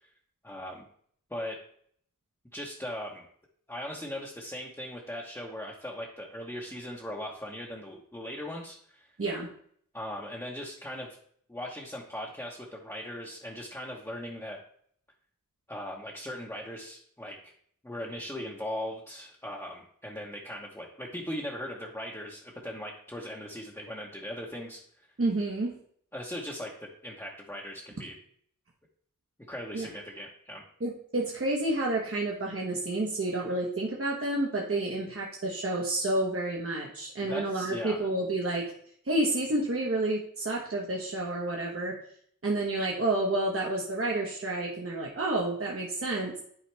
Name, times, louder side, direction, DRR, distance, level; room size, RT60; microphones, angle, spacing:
voice 1, 0.4-0.8 1.3-1.6 2.5-3.3 3.7-9.1 9.9-11.2 11.5-14.6 15.7-17.5 17.8-25.1 26.1-28.1 29.5-30.6 37.3-38.1, left 1 dB, 10° left, -3 dB, 1.1 m, -39 dB
voice 2, 25.2-25.7 29.7-29.9 30.8-38.7 39.0-42.0 42.4-46.3, right 2 dB, 40° right, -2 dB, 1.2 m, -30 dB
10.5 x 4.1 x 3.4 m, 0.62 s
wide cardioid pair, 70°, 33 cm